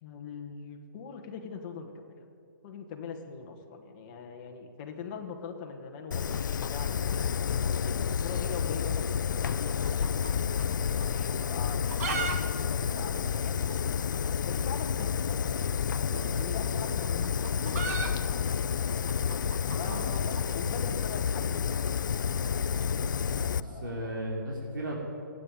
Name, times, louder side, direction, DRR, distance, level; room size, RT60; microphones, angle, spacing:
voice 1, 0.0-2.2 2.6-7.2 7.5-10.3 11.0-13.8 14.4-15.5 16.3-18.5 19.7-21.9 23.4-24.1, left 5 dB, 25° left, 3 dB, 1.5 m, -42 dB
Fire, 6.1-23.6, left 7 dB, 65° left, 0.5 m, -30 dB
sound 1, 9.4-10.7 11.0-11.1 11.6-12.4 12.6-12.7 12.9-13.0 13.6-13.7 14.9-15.1 16.2-20.5, right 5 dB, 45° right, 1.8 m, -36 dB
voice 2, 19.7-20.3 23.6-25.0, right 1 dB, 70° right, -3 dB, 3.2 m, -36 dB
15.5 x 9.1 x 9.0 m, 2.5 s
hypercardioid pair, 165°, 11 cm